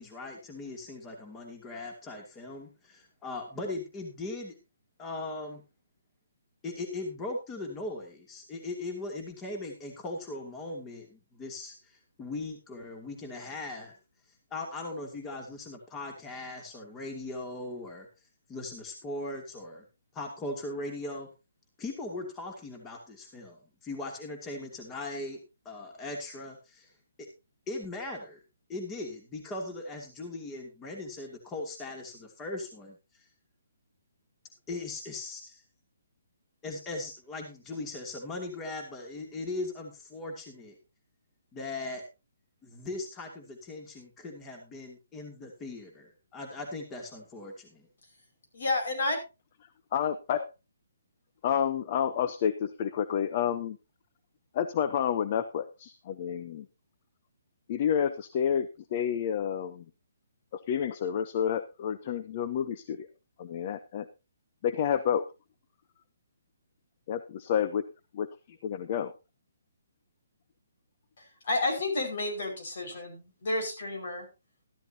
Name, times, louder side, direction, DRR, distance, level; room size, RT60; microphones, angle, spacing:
voice 1, 0.0-4.5 5.0-5.6 6.6-13.9 14.5-18.1 18.5-19.8 20.1-21.3 21.8-25.4 25.6-26.9 27.7-28.4 28.7-33.2 34.7-35.6 36.6-40.7 41.5-42.0 42.6-47.9, left 2 dB, 15° left, 2 dB, 2.6 m, -39 dB
voice 2, 48.5-49.2 71.2-74.3, left 2 dB, 65° left, 4 dB, 5.4 m, -31 dB
voice 3, 49.9-50.5 51.4-53.8 54.5-56.7 57.7-59.8 60.5-63.1 63.4-64.1 64.6-65.3 67.1-67.8 68.1-68.3 68.6-69.1, left 8 dB, 40° left, 12 dB, 0.8 m, -29 dB
13.5 x 12.5 x 2.8 m, 0.27 s
hypercardioid pair, 155°, 0 cm